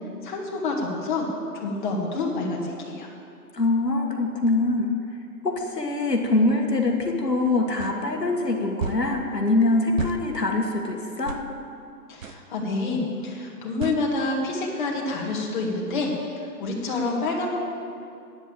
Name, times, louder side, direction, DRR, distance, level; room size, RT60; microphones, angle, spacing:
voice 1, 0.2-1.3 1.5-3.1 12.1-17.5, left 3 dB, 30° left, -1 dB, 1.9 m, -28 dB
voice 2, 3.5-4.9 5.4-11.4, left 2 dB, 85° left, 2 dB, 1.8 m, -23 dB
sound 1, 7.8-7.9 8.8-9.1 10.0-10.2 11.2-11.5 12.2-12.4 13.8-14.0, right 6 dB, 55° right, 0.8 m, -31 dB
9.4 x 8.0 x 8.8 m, 2.5 s
figure-of-eight pair, 140°, 47 cm